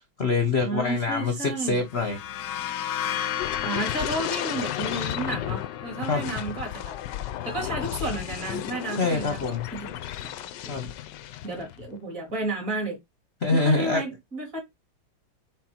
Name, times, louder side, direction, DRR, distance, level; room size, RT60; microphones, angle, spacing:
voice 1, 0.0-2.2 6.1-6.2 9.0-9.7 10.7-10.9 13.4-14.0, left 3 dB, 45° left, 0.9 m, -25 dB
voice 2, 0.6-1.8 3.6-6.9 7.4-10.0 10.2-10.3 10.6-10.9 11.4-13.0 13.5-14.6, right 2 dB, 40° right, 3.0 m, -32 dB
sound 1, 1.8-9.4, left 10 dB, 85° left, 1.5 m, -35 dB
sound 2, 3.4-11.9 12.2-12.5, left 12 dB, 70° left, 1.1 m, -34 dB
6.0 x 4.2 x 4.4 m
omnidirectional pair, 2.3 m